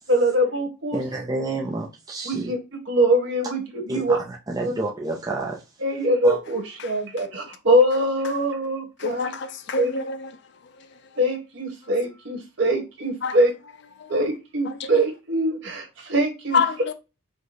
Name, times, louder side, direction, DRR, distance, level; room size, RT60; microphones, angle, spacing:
voice 1, 0.1-1.0 2.2-2.6 2.9-4.2 4.6-4.7 5.8-9.3 9.7-10.0 11.2-13.5 14.1-16.6, right 1 dB, 55° right, 1.3 m, -23 dB
voice 2, 0.9-2.5 3.9-5.6 6.2-6.4, right 2 dB, 15° right, 0.5 m, -29 dB
voice 3, 9.0-10.3 13.2-13.4 14.7-14.9 16.5-16.9, left 5 dB, 55° left, 0.5 m, -26 dB
5.0 x 2.2 x 3.9 m
head